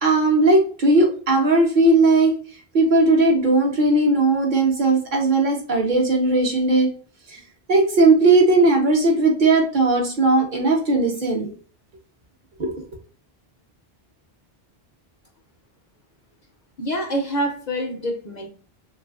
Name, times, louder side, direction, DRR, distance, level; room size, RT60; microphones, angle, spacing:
voice 1, 0.0-2.3 2.7-6.9 7.3-7.4 7.7-11.5 12.6-12.7, right 2 dB, 55° right, 1 dB, 0.8 m, -17 dB
voice 2, 16.8-18.5, right 1 dB, 55° left, 1 dB, 0.5 m, -26 dB
3.1 x 2.4 x 2.2 m, 0.41 s
omnidirectional pair, 1.0 m